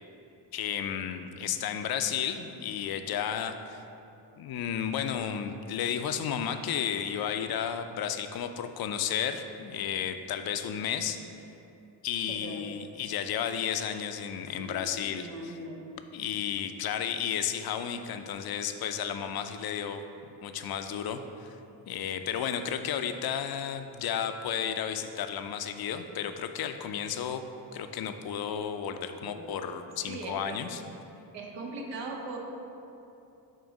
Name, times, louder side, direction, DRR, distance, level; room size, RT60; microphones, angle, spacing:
voice 1, 0.5-3.8 4.4-11.2 12.0-15.5 16.1-20.0 20.4-21.6 21.9-27.4 27.7-30.8, left 8 dB, 60° left, 8 dB, 0.5 m, -33 dB
voice 2, 12.3-12.6 14.5-15.8 29.2-29.5 30.1-30.6 31.3-32.4, right 3 dB, 85° right, 0 dB, 0.9 m, -40 dB
7.4 x 2.6 x 5.2 m, 2.8 s
cardioid pair, 70°, 42 cm